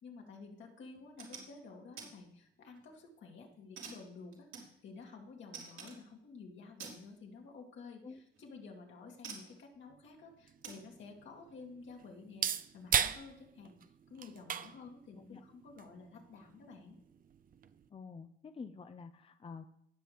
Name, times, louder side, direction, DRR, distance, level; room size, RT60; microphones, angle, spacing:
voice 1, 0.0-13.7 14.1-17.0, left 4 dB, 70° left, 0 dB, 2.6 m, -52 dB
sound 1, 1.0-1.5 2.0-2.1 2.5-3.0 3.8-5.1 5.5-6.0 6.8-7.0 8.3-8.4 9.2-9.6 10.6-10.8, right 5 dB, 80° right, 3.0 m, -48 dB
sound 2, 9.9-17.9, right 8 dB, 45° right, 0.6 m, -40 dB
voice 2, 17.9-19.7, left 5 dB, 30° left, 9 dB, 0.6 m, -48 dB
18.0 x 6.4 x 3.5 m, 0.73 s
cardioid pair, 90°, 20 cm